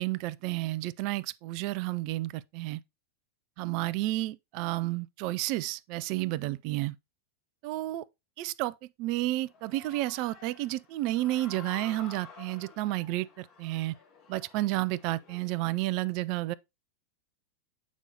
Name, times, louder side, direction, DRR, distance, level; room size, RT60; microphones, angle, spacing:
voice 1, 0.0-2.8 3.6-7.0 7.6-8.1 8.4-13.9 14.3-16.5, right 17 dB, 45° right, 0.4 m, -31 dB
Human voice / Cheering, 9.4-16.0, left 5 dB, 40° left, 3.0 m, -51 dB
8.3 x 5.3 x 2.8 m
figure-of-eight pair, 90°, 0 cm